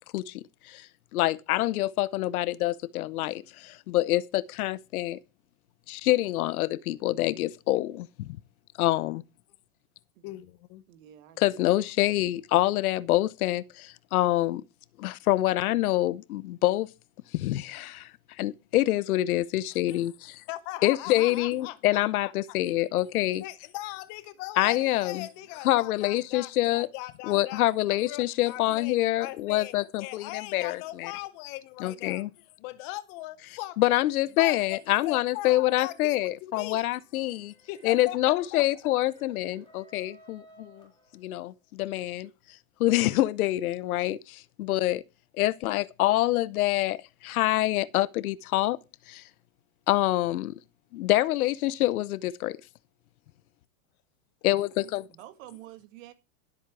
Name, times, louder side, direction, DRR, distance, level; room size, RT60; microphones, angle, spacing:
voice 1, 0.1-0.9 1.1-5.2 5.9-8.4 8.8-9.2 11.4-14.6 15.0-16.9 17.3-18.1 18.4-20.4 20.8-23.4 24.6-25.3 25.6-26.9 27.3-31.1 31.8-32.3 33.8-37.5 37.8-40.9 41.1-42.3 42.8-45.0 45.3-48.8 49.1-49.2 49.9-50.6 50.9-52.6 54.4-55.1, left 16 dB, 70° left, 0.8 m, -26 dB
voice 2, 10.2-10.8 20.5-22.3 23.4-27.7 28.1-32.2 32.6-33.8 34.4-36.9 37.7-38.6, left 16 dB, 35° left, 0.7 m, -40 dB
voice 3, 10.9-11.6 25.4-25.5 55.1-56.1, right 13 dB, 60° right, 2.2 m, -49 dB
sound 1, 36.8-41.6, left 1 dB, 10° left, 4.2 m, -58 dB
12.5 x 8.0 x 4.8 m
supercardioid pair, 155°, 45 cm